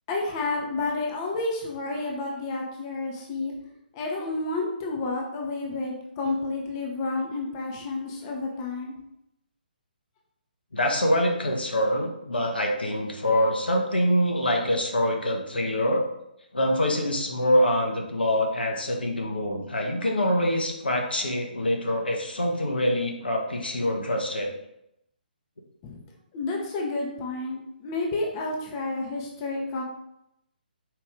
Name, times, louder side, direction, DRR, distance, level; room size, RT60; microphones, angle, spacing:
voice 1, 0.1-3.5 3.9-9.0 25.8-26.0 26.3-29.8, left 3 dB, 25° left, 0 dB, 0.7 m, -30 dB
voice 2, 10.7-16.0 16.5-24.5, equal, 75° left, 1 dB, 0.8 m, -25 dB
4.7 x 2.6 x 3.5 m, 0.82 s
figure-of-eight pair, 135°, 5 cm